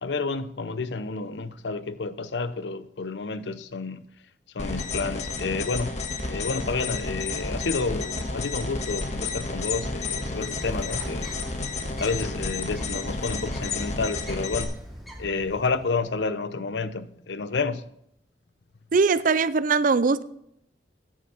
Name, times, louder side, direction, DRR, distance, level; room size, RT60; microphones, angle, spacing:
voice 1, 0.0-4.0 4.5-6.0 6.3-11.3 12.0-14.8 15.2-17.9, left 4 dB, 80° left, 0.7 m, -30 dB
sound 1, 4.6-14.6, left 3 dB, 40° left, 1.6 m, -31 dB
Bird, 10.1-16.1, equal, ahead, 2.4 m, -41 dB
voice 2, 18.9-20.2, right 4 dB, 50° right, 0.5 m, -21 dB
9.6 x 8.6 x 5.6 m
head